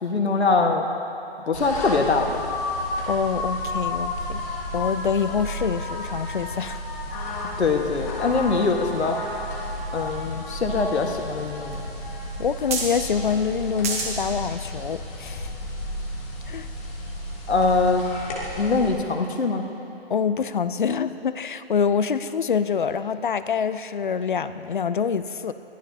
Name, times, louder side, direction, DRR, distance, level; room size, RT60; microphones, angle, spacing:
voice 1, 0.0-0.9 1.4-2.4 7.6-9.2 9.9-11.8 17.5-18.0 18.6-19.6, left 4 dB, 80° left, 3 dB, 1.6 m, -23 dB
sound 1, 1.5-18.9, left 1 dB, 15° left, 1.1 m, -32 dB
voice 2, 3.1-4.4 4.7-6.8 12.4-15.5 16.5-16.7 20.1-25.5, left 6 dB, 50° left, 13 dB, 0.5 m, -26 dB
sound 2, 9.5-9.6 10.0-11.0 11.5-11.6 11.7-11.8 12.7-13.0 13.8-14.1 14.8-14.9, right 4 dB, 15° right, 0.8 m, -28 dB
21.0 x 14.5 x 2.8 m, 3.0 s
hypercardioid pair, 165°, 32 cm